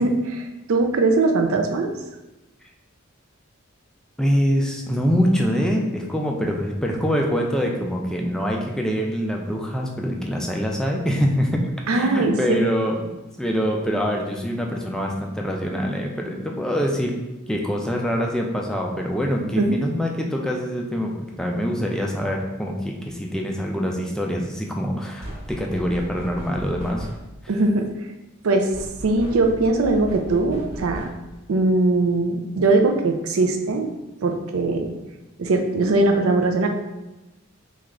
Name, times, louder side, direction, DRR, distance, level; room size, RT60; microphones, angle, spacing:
voice 1, 0.0-1.9 11.9-12.7 19.6-19.8 27.5-27.8 28.4-28.7 29.0-31.1 31.5-33.9 34.2-34.9 35.4-36.7, right 2 dB, 80° right, 4 dB, 0.4 m, -20 dB
voice 2, 4.2-13.1 13.4-17.2 17.5-27.1, equal, 5° left, 0 dB, 0.3 m, -24 dB
sound 1, 25.2-27.4 28.7-31.4, right 1 dB, 35° right, 0.8 m, -37 dB
3.1 x 2.3 x 3.6 m, 1.0 s
head